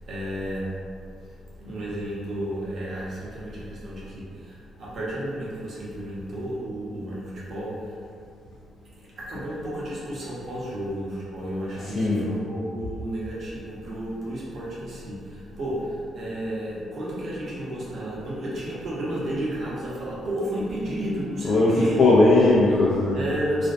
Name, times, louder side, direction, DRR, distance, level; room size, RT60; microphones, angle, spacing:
voice 1, 0.1-0.7 1.6-8.0 8.9-22.0 23.1-23.7, right 1 dB, 55° right, -7 dB, 0.8 m, -32 dB
voice 2, 11.8-12.3 21.4-23.2, left 2 dB, 65° left, -6 dB, 0.4 m, -19 dB
2.4 x 2.2 x 2.5 m, 2.3 s
cardioid pair, 90°, 0 cm